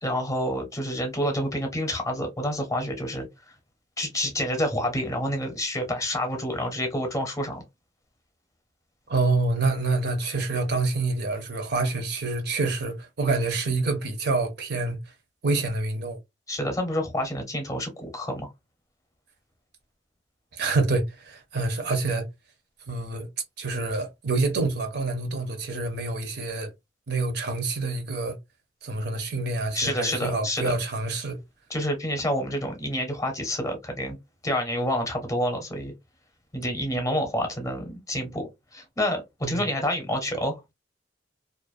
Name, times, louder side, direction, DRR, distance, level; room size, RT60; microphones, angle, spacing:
voice 1, 0.0-3.3 4.0-7.6 16.5-18.5 29.7-30.7 31.7-34.2 34.4-35.9 36.5-40.7, equal, 15° left, 0.8 m, -28 dB
voice 2, 9.1-15.0 15.4-16.2 20.5-22.3 22.9-23.3 23.6-26.7 27.1-28.4 28.8-31.4 39.4-39.6, right 3 dB, 55° right, 0.6 m, -27 dB
2.4 x 2.1 x 2.4 m
head